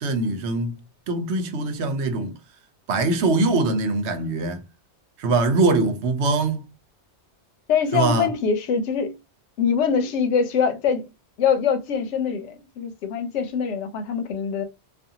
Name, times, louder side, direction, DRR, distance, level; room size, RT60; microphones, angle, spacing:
voice 1, 0.0-0.8 1.1-2.4 2.9-4.6 5.2-6.6 7.9-8.3, right 3 dB, 75° right, 0.9 m, -22 dB
voice 2, 7.7-9.2 9.6-11.1 11.4-14.6, left 6 dB, 90° left, 0.9 m, -23 dB
2.5 x 2.4 x 2.7 m
omnidirectional pair, 1.2 m